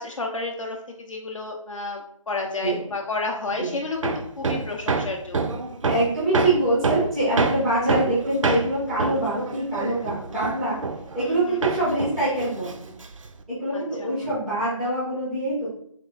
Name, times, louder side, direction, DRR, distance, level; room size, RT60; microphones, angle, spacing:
voice 1, 0.0-5.6 11.2-11.7 13.7-14.4, left 3 dB, 70° left, 1 dB, 0.5 m, -31 dB
Hammer, 4.0-11.4 11.6-13.4, right 4 dB, 70° right, 0.4 m, -27 dB
voice 2, 5.9-10.8 11.1-13.0 13.5-15.7, right 1 dB, ahead, -10 dB, 0.4 m, -24 dB
3.5 x 2.3 x 3.5 m, 0.66 s
figure-of-eight pair, 155°, 17 cm